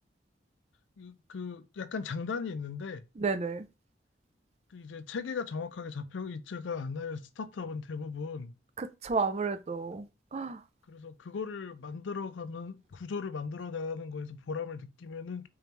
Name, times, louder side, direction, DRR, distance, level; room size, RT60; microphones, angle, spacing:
voice 1, 1.0-3.0 4.7-8.5 10.9-15.5, left 5 dB, 90° left, 0.4 m, -37 dB
voice 2, 3.2-3.7 8.8-10.6, right 4 dB, 35° right, 0.4 m, -32 dB
3.8 x 3.1 x 3.3 m
head